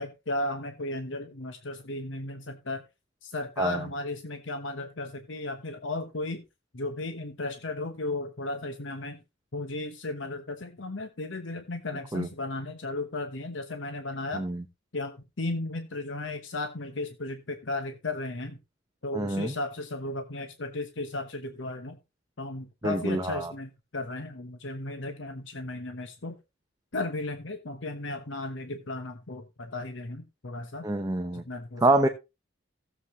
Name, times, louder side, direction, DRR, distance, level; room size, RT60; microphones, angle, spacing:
voice 1, 0.0-2.8 3.2-6.4 6.7-9.2 9.5-14.4 14.9-18.6 19.0-22.0 22.4-26.3 26.9-30.9 31.3-32.1, left 2 dB, 70° left, 8 dB, 1.1 m, -35 dB
voice 2, 19.1-19.5 22.8-23.5 30.8-31.4 31.8-32.1, right 2 dB, 20° right, 5 dB, 0.9 m, -26 dB
16.0 x 7.5 x 3.2 m, 0.26 s
head